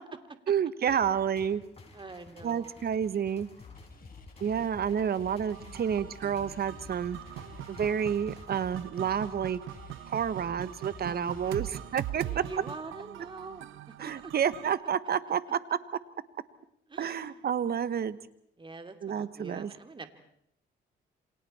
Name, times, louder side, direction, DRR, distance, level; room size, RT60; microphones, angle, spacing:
voice 1, 0.5-1.6 2.4-3.5 4.4-7.2 7.7-9.6 10.1-12.4 14.0-15.6 17.0-18.2 19.0-19.7, right 8 dB, 50° right, 15 dB, 1.3 m, -29 dB
sound 1, 0.9-8.9, left 2 dB, 30° left, 5.6 m, -53 dB
voice 2, 1.9-2.8 4.6-4.7 11.0-11.9 12.2-14.3 16.9-17.4 18.6-20.2, right 3 dB, 25° right, 7 dB, 2.6 m, -45 dB
sound 2, 3.6-12.7, left 5 dB, 45° left, 4.0 m, -51 dB
sound 3, 5.5-14.8, right 13 dB, 85° right, 0.8 m, -42 dB
28.5 x 26.5 x 4.3 m, 0.71 s
cardioid pair, 90°, 20 cm